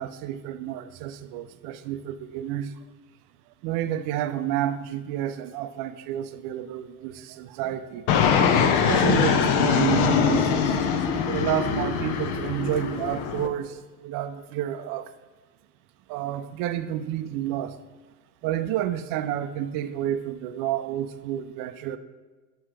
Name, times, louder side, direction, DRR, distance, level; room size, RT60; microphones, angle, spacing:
voice 1, 0.0-2.7 3.6-8.3 8.9-10.8 11.3-15.1 16.1-17.7 18.4-22.0, right 11 dB, 45° right, 11 dB, 0.5 m, -30 dB
Fixed-wing aircraft airplane, 8.1-13.5, left 7 dB, 55° left, 0.7 m, -22 dB
6.0 x 5.5 x 3.3 m, 1.3 s
hypercardioid pair, 90°, 47 cm